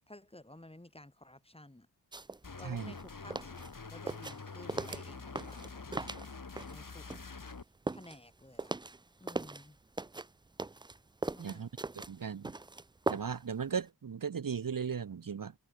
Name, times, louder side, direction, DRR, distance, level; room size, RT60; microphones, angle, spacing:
voice 1, 0.1-1.9 2.5-3.6 3.9-6.0 6.7-7.1 7.9-8.7 9.2-9.8 11.3-11.7, left 1 dB, 15° left, 3.2 m, -53 dB
sound 1, 2.1-2.4 2.7-6.8 7.1-9.7 10.0-13.5 13.8-13.9, right 3 dB, 10° right, 0.3 m, -39 dB
sound 2, 2.4-7.6, left 4 dB, 50° left, 3.8 m, -46 dB
voice 2, 11.4-11.7 12.1-12.5 13.1-15.5, right 6 dB, 55° right, 0.9 m, -37 dB
wide cardioid pair, 85°, 40 cm